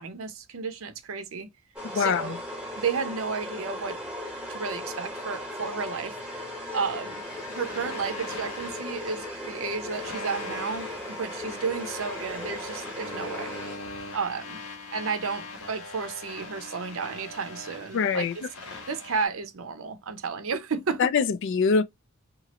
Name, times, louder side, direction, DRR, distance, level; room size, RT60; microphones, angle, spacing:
voice 1, 0.0-1.5 1.9-2.4 2.8-4.0 4.5-6.1 6.7-13.5 14.1-14.6 14.9-18.3 18.9-21.1, right 5 dB, 65° right, 0.6 m, -32 dB
sound 1, 1.8-14.1, left 1 dB, 5° right, 1.0 m, -37 dB
voice 2, 1.9-2.4 17.9-18.3 21.0-21.8, left 5 dB, 55° left, 0.3 m, -23 dB
sound 2, 7.2-19.3, left 2 dB, 90° left, 1.2 m, -41 dB
3.0 x 2.4 x 2.8 m
head